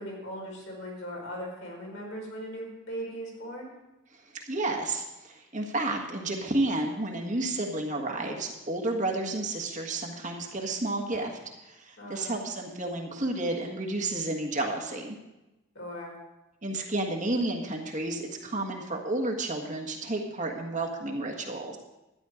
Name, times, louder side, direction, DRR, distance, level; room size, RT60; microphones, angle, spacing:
voice 1, 0.0-3.7 12.0-12.4 15.7-16.2, equal, 70° left, -2 dB, 5.1 m, -39 dB
voice 2, 4.4-15.2 16.6-21.8, right 2 dB, 35° right, 1 dB, 1.6 m, -31 dB
12.5 x 10.5 x 5.0 m, 0.99 s
head